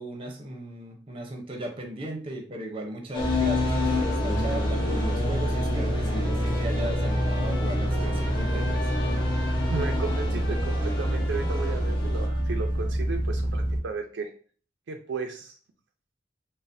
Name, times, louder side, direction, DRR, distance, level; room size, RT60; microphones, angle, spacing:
voice 1, 0.0-8.8, right 1 dB, 30° right, 2 dB, 0.7 m, -37 dB
sound 1, 3.1-12.3, left 3 dB, 25° left, 0.8 m, -30 dB
sound 2, 3.2-13.8, right 1 dB, 50° left, 1.1 m, -27 dB
Trumpet, 5.7-12.9, left 2 dB, 70° left, 0.7 m, -44 dB
voice 2, 7.7-8.2 9.7-14.3 14.9-15.6, right 4 dB, 70° right, 4 dB, 0.4 m, -35 dB
3.9 x 2.0 x 2.5 m, 0.42 s
head